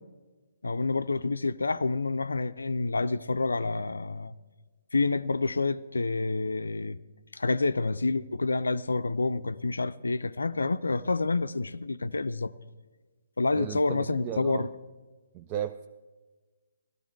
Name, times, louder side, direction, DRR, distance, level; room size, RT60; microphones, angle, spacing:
voice 1, 0.6-4.3 4.9-7.0 7.3-12.5 13.4-14.7, left 3 dB, 80° left, 0.4 m, -28 dB
voice 2, 13.5-14.7 15.3-15.9, right 10 dB, 25° right, 0.4 m, -35 dB
14.5 x 13.0 x 4.5 m
figure-of-eight pair, 140°, 0 cm